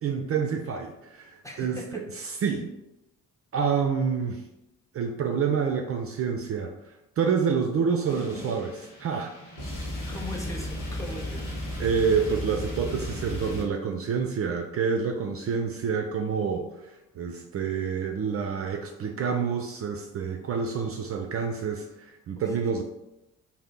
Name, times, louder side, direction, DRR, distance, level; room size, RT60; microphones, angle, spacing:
voice 1, 0.0-2.0 2.4-2.7 3.5-4.4 4.9-6.7 7.2-9.3 11.8-22.8, right 6 dB, 40° right, 3 dB, 0.4 m, -28 dB
voice 2, 1.4-2.0 10.1-11.6 22.4-22.6, left 1 dB, 10° left, 0 dB, 0.6 m, -39 dB
sound 1, 8.1-13.6, left 1 dB, 55° left, 1.2 m, -35 dB
2.7 x 2.1 x 3.6 m, 0.92 s
hypercardioid pair, 50°, 36 cm